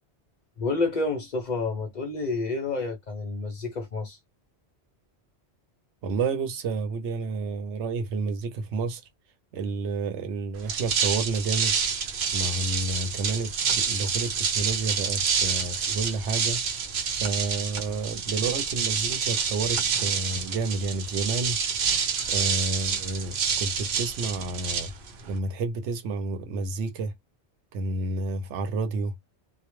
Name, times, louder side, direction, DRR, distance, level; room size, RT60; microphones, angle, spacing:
voice 1, 0.6-4.2 15.9-16.0 22.2-22.4, left 3 dB, 50° left, 0.6 m, -29 dB
voice 2, 6.0-9.0 9.5-11.7 12.3-16.6 17.1-21.6 22.3-24.9 25.3-27.1 27.7-29.1, right 3 dB, 90° right, 0.9 m, -30 dB
sound 1, 10.6-25.4, right 6 dB, 60° right, 0.7 m, -28 dB
2.2 x 2.1 x 2.9 m
omnidirectional pair, 1.1 m